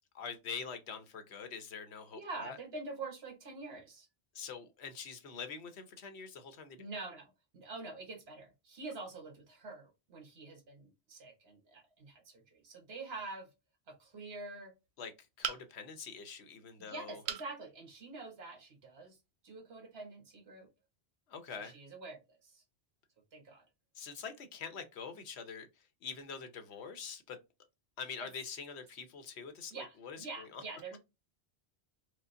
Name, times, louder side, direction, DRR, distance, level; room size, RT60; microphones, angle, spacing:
voice 1, 0.1-2.6 4.3-6.8 15.0-15.1 15.4-17.2 21.3-21.8 24.0-27.4 28.0-30.6, left 6 dB, 80° left, 1.1 m, -45 dB
voice 2, 2.1-4.1 6.8-13.5 13.9-14.7 16.8-19.2 19.4-20.7 21.6-22.6 23.3-23.7 28.2-28.3 29.7-31.0, right 3 dB, 70° right, 1.3 m, -46 dB
sound 1, 15.4-16.0 17.3-17.5 18.1-18.2 18.5-18.6, right 8 dB, 90° right, 0.9 m, -38 dB
4.8 x 2.0 x 2.6 m
omnidirectional pair, 1.1 m